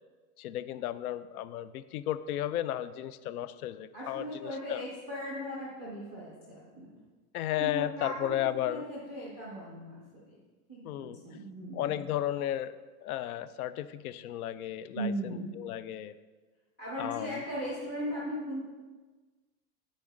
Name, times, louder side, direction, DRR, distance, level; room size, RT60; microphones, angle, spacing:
voice 1, 0.4-4.9 7.3-8.8 10.8-11.2 11.7-12.7 13.0-16.1 17.0-17.4, left 12 dB, 90° left, 14 dB, 0.5 m, -34 dB
voice 2, 3.9-6.9 7.6-8.4 8.6-10.4 10.7-12.0 14.9-15.5 16.8-18.6, equal, 5° left, -7 dB, 0.3 m, -38 dB
10.5 x 4.0 x 3.9 m, 1.3 s
supercardioid pair, 175°, 43 cm